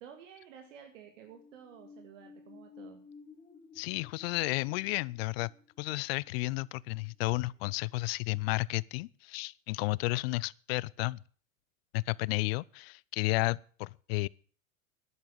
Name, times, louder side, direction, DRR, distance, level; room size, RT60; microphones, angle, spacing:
voice 1, 0.0-3.0, right 8 dB, 65° right, 2.3 m, -52 dB
sound 1, 1.1-7.4 7.8-7.9, left 4 dB, 15° left, 2.4 m, -56 dB
voice 2, 3.7-5.5 5.8-11.2 11.9-14.3, left 22 dB, 50° left, 0.5 m, -32 dB
11.0 x 11.0 x 6.9 m
hypercardioid pair, 100°, 41 cm